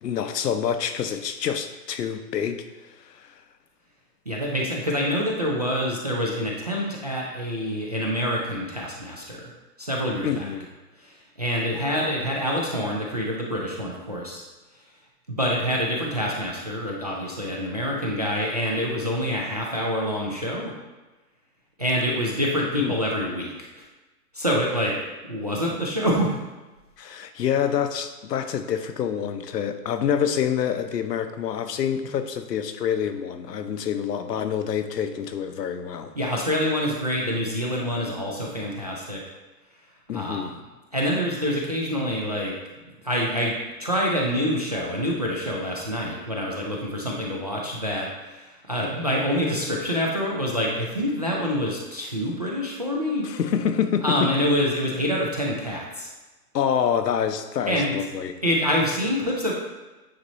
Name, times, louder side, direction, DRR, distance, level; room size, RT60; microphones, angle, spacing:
voice 1, 0.0-2.6 3.0-3.3 10.2-10.7 22.7-23.0 27.0-36.1 40.1-40.5 53.2-54.3 56.5-58.3, left 8 dB, 75° left, 8 dB, 0.8 m, -27 dB
voice 2, 4.3-9.5 9.8-10.4 11.0-14.4 15.3-20.7 21.8-23.8 24.3-24.9 25.3-26.4 36.2-39.2 40.1-40.4 40.9-42.5 42.9-53.2 54.0-56.1 57.7-57.9 58.4-59.5, equal, 30° right, -3 dB, 0.3 m, -26 dB
8.7 x 3.0 x 4.0 m, 1.2 s
hypercardioid pair, 145°, 49 cm